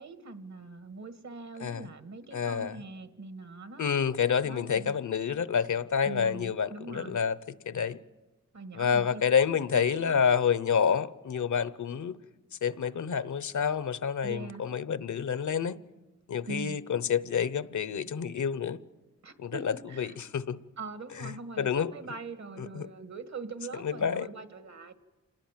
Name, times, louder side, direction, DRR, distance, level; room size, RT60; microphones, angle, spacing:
voice 1, 0.0-3.9 4.4-4.9 6.0-7.2 8.5-9.2 9.7-10.2 14.2-14.6 16.5-16.8 19.2-20.2 20.8-24.9, right 3 dB, 65° right, 1.9 m, -42 dB
voice 2, 2.3-2.8 3.8-7.4 7.7-8.0 8.7-12.2 12.6-15.8 16.3-18.8 19.4-20.6 21.2-21.9 22.6-22.9 23.8-24.3, left 7 dB, 70° left, 0.9 m, -28 dB
27.0 x 19.5 x 7.5 m
cardioid pair, 60°, 30 cm